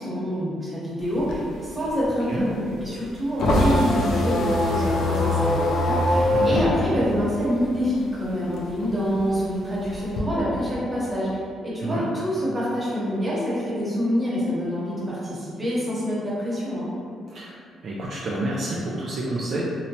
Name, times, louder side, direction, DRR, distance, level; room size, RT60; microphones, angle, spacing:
voice 1, 0.0-11.3 11.6-16.9, equal, 20° right, -8 dB, 1.0 m, -26 dB
sound 1, 1.0-8.1 8.4-10.2, left 1 dB, 75° left, 0.4 m, -23 dB
voice 2, 6.3-6.6 11.8-12.0 17.3-17.5 17.8-19.6, right 2 dB, 55° right, -5 dB, 0.3 m, -28 dB
2.8 x 2.1 x 2.7 m, 2.3 s
cardioid pair, 90°, 0 cm